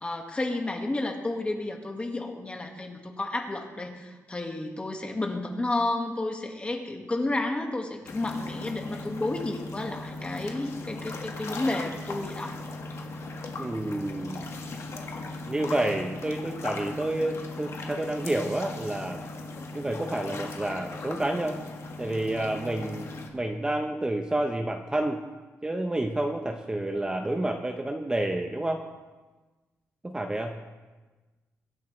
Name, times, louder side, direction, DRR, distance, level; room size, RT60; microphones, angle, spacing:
voice 1, 0.0-12.6, left 2 dB, 20° left, 3 dB, 1.9 m, -31 dB
sound 1, 8.1-23.3, left 2 dB, 60° left, 1.8 m, -38 dB
voice 2, 13.6-14.4 15.5-19.2 19.7-21.6 22.0-25.2 25.6-28.8 30.0-30.6, right 1 dB, 15° right, 3 dB, 1.0 m, -29 dB
23.5 x 11.5 x 3.3 m, 1.2 s
cardioid pair, 115°, 5 cm